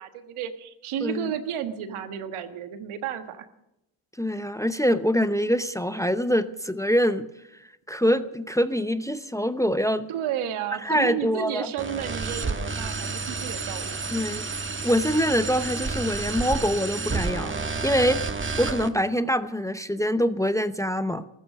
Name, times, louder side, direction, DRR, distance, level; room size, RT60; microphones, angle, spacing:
voice 1, 0.0-3.5 10.1-14.1, right 9 dB, 80° right, 8 dB, 1.6 m, -32 dB
voice 2, 1.0-1.3 4.2-7.3 7.9-10.1 10.8-11.7 14.1-14.5 14.8-18.2 18.6-21.2, equal, 5° left, 11 dB, 0.8 m, -24 dB
sound 1, 11.8-18.9, right 4 dB, 25° right, 1.4 m, -30 dB
14.0 x 14.0 x 6.5 m, 0.85 s
supercardioid pair, 70°, 49 cm